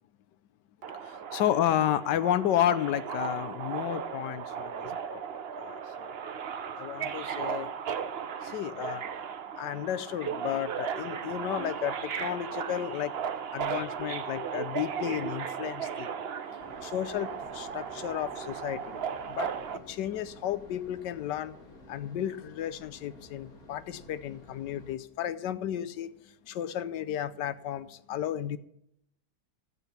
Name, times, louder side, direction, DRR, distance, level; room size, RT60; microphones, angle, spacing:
Subway metro underground, 0.8-19.8, right 7 dB, 55° right, 0.7 m, -36 dB
voice 1, 1.0-5.2 5.6-6.1 6.8-7.7 8.4-9.1 9.6-13.1 13.5-16.1 16.5-19.0 19.3-21.6 21.9-28.6, left 11 dB, 80° left, 14 dB, 1.3 m, -32 dB
sound 1, 16.6-25.0, left 2 dB, 55° left, 2.7 m, -52 dB
13.0 x 8.6 x 5.8 m, 0.75 s
omnidirectional pair, 1.9 m